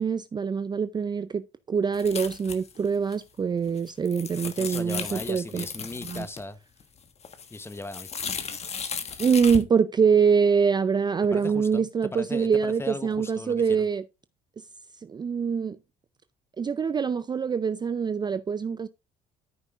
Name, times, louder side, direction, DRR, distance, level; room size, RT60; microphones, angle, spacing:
voice 1, 0.0-5.7 6.0-6.3 9.2-14.0 15.0-15.8 16.6-18.9, right 6 dB, 25° right, 0.5 m, -24 dB
sound 1, 1.9-2.9 3.1-3.2 3.7-6.4 6.8-9.6, left 6 dB, 40° left, 1.3 m, -36 dB
voice 2, 4.6-6.6 7.5-8.1 11.3-13.9, left 2 dB, 15° left, 1.0 m, -38 dB
13.5 x 5.4 x 2.4 m
cardioid pair, 110°, 17 cm